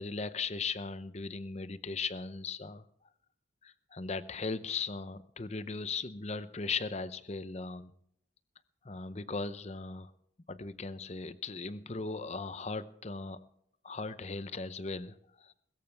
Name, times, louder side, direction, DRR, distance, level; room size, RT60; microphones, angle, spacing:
voice 1, 0.0-2.8 3.6-7.9 8.8-10.1 10.5-13.5 13.8-15.5, left 4 dB, 35° left, 14 dB, 0.7 m, -38 dB
22.0 x 14.0 x 3.4 m, 0.72 s
head